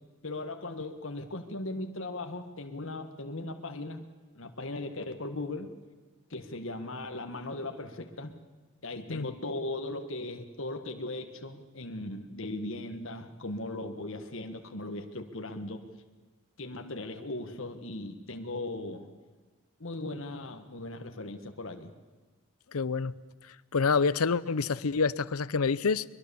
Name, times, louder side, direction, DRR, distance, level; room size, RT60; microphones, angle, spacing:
voice 1, 0.2-4.1 4.3-5.7 6.3-8.4 8.8-15.8 16.6-19.1 19.8-21.9, left 2 dB, 65° left, 1.6 m, -38 dB
voice 2, 22.7-23.1 23.7-26.0, left 5 dB, 80° left, 0.6 m, -27 dB
22.5 x 22.5 x 7.0 m
head